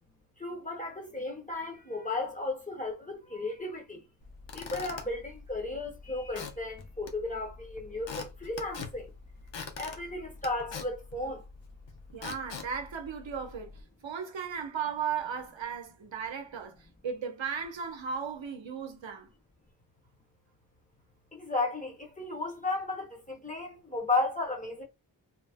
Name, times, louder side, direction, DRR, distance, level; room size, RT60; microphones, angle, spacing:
voice 1, 0.4-4.0 4.5-9.1 9.8-11.4 21.3-24.8, left 2 dB, 15° left, 1.0 m, -34 dB
Squeak / Wood, 4.2-13.8, left 5 dB, 75° left, 0.7 m, -45 dB
voice 2, 12.1-13.7 14.0-16.8 17.0-19.3, right 7 dB, 80° right, 0.7 m, -36 dB
2.6 x 2.0 x 3.4 m
wide cardioid pair, 70°, 45 cm